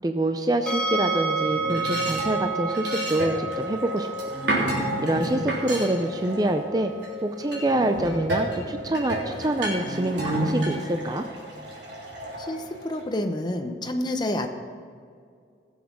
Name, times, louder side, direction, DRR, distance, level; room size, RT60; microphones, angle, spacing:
voice 1, 0.0-4.3 5.0-6.9 7.2-11.2, right 1 dB, 20° right, 6 dB, 0.5 m, -26 dB
sound 1, 0.7-13.6, right 2 dB, 5° left, 1.5 m, -33 dB
sound 2, 1.4-7.1 7.5-13.0, right 1 dB, 80° right, 3.5 m, -31 dB
voice 2, 12.4-14.5, left 1 dB, 25° left, 5 dB, 0.8 m, -28 dB
16.5 x 7.2 x 6.1 m, 2.2 s
head